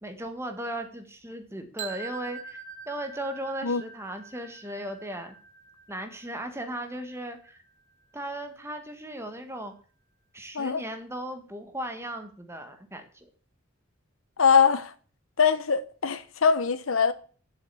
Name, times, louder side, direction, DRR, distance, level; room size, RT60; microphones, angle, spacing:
voice 1, 0.0-2.6 2.9-5.3 5.9-7.6 8.1-9.7 10.3-13.3, right 1 dB, 15° right, 1.6 m, -37 dB
sound 1, 1.8-7.7, right 5 dB, 40° right, 2.2 m, -44 dB
voice 2, 14.4-14.9 15.4-17.1, left 6 dB, 80° left, 0.9 m, -22 dB
7.5 x 7.1 x 8.3 m
head